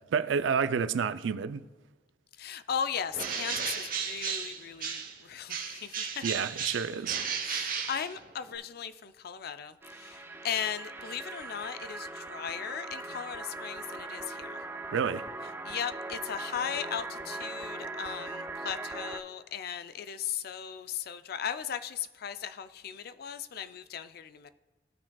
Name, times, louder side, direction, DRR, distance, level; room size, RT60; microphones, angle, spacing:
voice 1, 0.1-1.6 6.2-7.2 14.9-15.3, right 6 dB, 90° right, 0.4 m, -29 dB
voice 2, 2.4-6.2 7.4-14.6 15.6-24.5, left 8 dB, 55° left, 0.4 m, -37 dB
Bird, 3.1-5.2 5.5-8.6, right 6 dB, 50° right, 1.0 m, -34 dB
sound 1, 9.8-19.2, right 2 dB, 10° right, 0.4 m, -40 dB
15.5 x 5.9 x 2.3 m
head